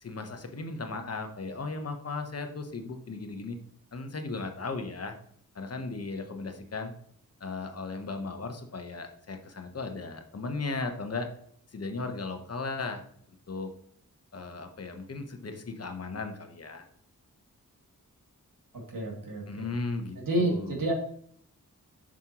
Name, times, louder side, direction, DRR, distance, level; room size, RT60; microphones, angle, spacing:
voice 1, 0.0-3.6 3.9-5.2 5.5-6.9 7.4-11.3 11.7-13.0 13.5-13.7 14.3-16.9 19.5-20.8, left 3 dB, 45° left, 6 dB, 1.0 m, -36 dB
voice 2, 18.9-19.7 20.3-20.9, right 1 dB, 80° right, -1 dB, 2.3 m, -29 dB
7.5 x 6.2 x 3.0 m, 0.64 s
wide cardioid pair, 125°, 33 cm